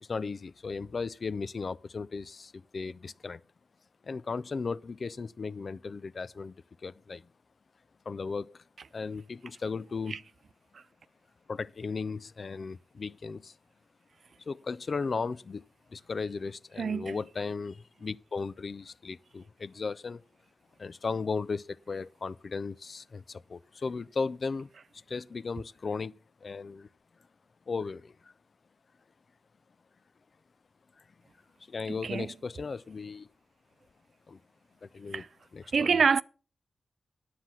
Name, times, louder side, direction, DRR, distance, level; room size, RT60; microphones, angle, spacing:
voice 1, 0.0-3.4 4.0-6.6 6.8-7.3 8.1-8.6 8.9-10.2 11.5-13.6 14.5-15.6 15.9-20.2 20.8-26.1 26.4-26.9 27.7-28.3 31.0-31.1 31.7-33.3 34.3-34.4 34.8-35.2 35.5-36.0, left 4 dB, 55° left, 0.4 m, -36 dB
voice 2, 16.8-17.2 31.9-32.3 35.1-35.3 35.7-36.2, right 6 dB, 70° right, 0.4 m, -27 dB
10.0 x 7.6 x 5.7 m
cardioid pair, 65°, 0 cm